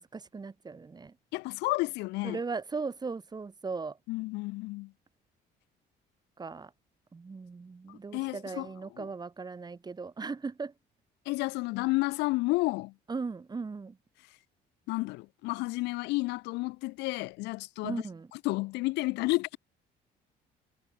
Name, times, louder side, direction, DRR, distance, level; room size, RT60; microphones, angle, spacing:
voice 1, 0.0-1.1 2.2-4.0 6.4-6.7 7.1-10.7 13.1-14.0 17.8-18.3, right 4 dB, 25° right, 4.0 m, -38 dB
voice 2, 1.3-2.4 4.1-4.9 7.9-8.7 9.0-9.1 11.3-12.9 14.9-18.0 18.4-19.6, left 22 dB, 90° left, 0.5 m, -31 dB
cardioid pair, 110°, 17 cm